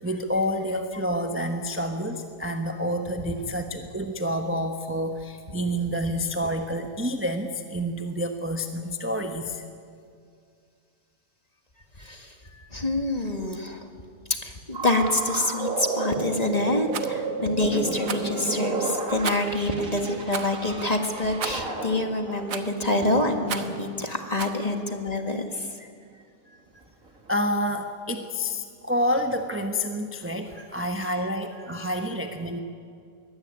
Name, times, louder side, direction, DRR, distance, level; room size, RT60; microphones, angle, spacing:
voice 1, 0.0-9.6 27.3-32.6, equal, 10° right, 4 dB, 1.0 m, -28 dB
voice 2, 12.0-13.9 14.4-25.9 30.6-30.7 31.0-31.1 31.7-32.0, left 2 dB, 25° left, 5 dB, 1.8 m, -27 dB
sound 1, 14.7-24.0 27.1-27.3, right 3 dB, 55° right, 2.6 m, -32 dB
Rattle, 16.9-17.1 18.0-18.3 19.2-19.6 20.3-20.5 21.4-21.7 22.5-22.8 23.5-23.8 24.4-24.6, right 7 dB, 85° right, 1.8 m, -33 dB
22.5 x 17.5 x 9.7 m, 2.3 s
omnidirectional pair, 1.7 m